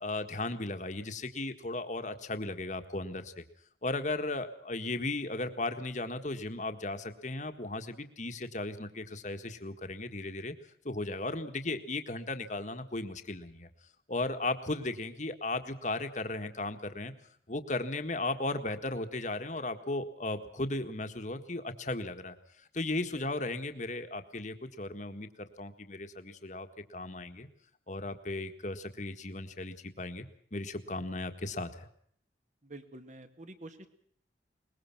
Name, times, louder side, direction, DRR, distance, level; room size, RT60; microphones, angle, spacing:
voice 1, 0.0-3.4 3.8-10.5 10.9-13.7 14.1-17.1 17.5-22.4 22.7-27.5 27.9-30.3 30.5-31.9, left 2 dB, 40° left, 7 dB, 1.7 m, -36 dB
voice 2, 32.6-33.9, right 2 dB, 40° right, 8 dB, 2.1 m, -48 dB
22.0 x 21.0 x 6.0 m, 0.65 s
head